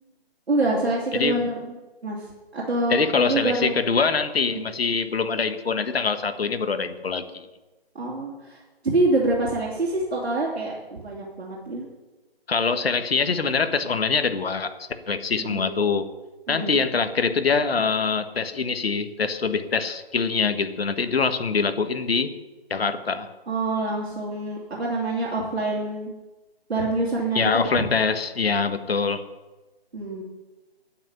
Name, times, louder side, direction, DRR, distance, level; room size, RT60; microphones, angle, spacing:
voice 1, 0.5-1.6 2.0-3.7 4.5-4.6 7.9-11.9 15.4-15.8 16.5-16.8 23.5-26.1 26.7-27.7 29.9-30.2, right 2 dB, 80° right, -4 dB, 3.1 m, -26 dB
voice 2, 1.1-1.5 2.9-7.4 12.5-14.7 15.1-16.1 16.5-22.3 22.7-23.3 27.3-29.2, left 5 dB, 70° left, 9 dB, 1.5 m, -24 dB
9.0 x 8.1 x 9.3 m, 1.1 s
hypercardioid pair, 160°, 31 cm